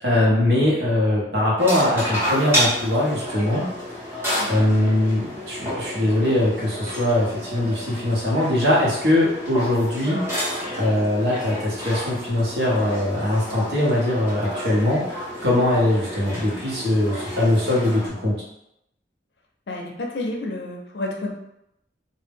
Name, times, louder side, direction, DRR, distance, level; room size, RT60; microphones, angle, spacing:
voice 1, 0.0-3.7 4.4-10.2 10.8-18.3, left 1 dB, 60° right, -5 dB, 0.8 m, -21 dB
sound 1, 1.6-18.1, equal, 15° right, 0.7 m, -30 dB
voice 2, 4.4-4.7 19.7-21.3, left 2 dB, 70° left, 1 dB, 0.5 m, -30 dB
2.1 x 2.1 x 3.4 m, 0.81 s
head